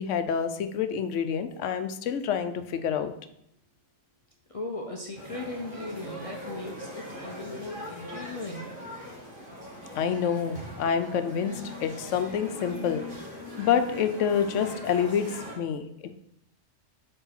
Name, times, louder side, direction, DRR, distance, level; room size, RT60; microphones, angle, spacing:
voice 1, 0.0-3.1 10.0-11.5 11.8-13.1 13.6-15.3 15.6-15.8, left 7 dB, 90° left, 9 dB, 1.0 m, -27 dB
voice 2, 4.5-8.7, left 2 dB, 35° left, 1 dB, 0.6 m, -38 dB
sound 1, 5.1-15.6, left 1 dB, 45° right, 2.1 m, -41 dB
4.7 x 4.5 x 5.8 m, 0.74 s
omnidirectional pair, 1.2 m